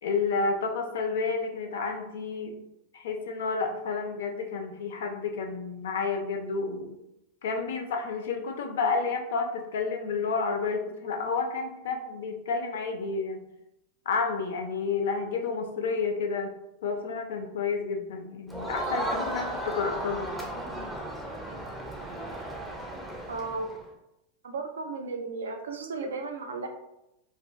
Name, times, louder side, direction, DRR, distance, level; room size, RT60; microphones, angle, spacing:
voice 1, 0.0-2.5 2.9-7.0 7.4-13.5 14.1-16.5 16.8-20.3, left 4 dB, 60° left, 4 dB, 0.4 m, -30 dB
Crowd, 18.5-23.8, right 1 dB, 5° right, 0.5 m, -35 dB
voice 2, 23.3-23.7 24.4-26.7, right 4 dB, 65° right, 4 dB, 0.3 m, -34 dB
2.4 x 2.4 x 2.3 m, 0.87 s
figure-of-eight pair, 90°, 0 cm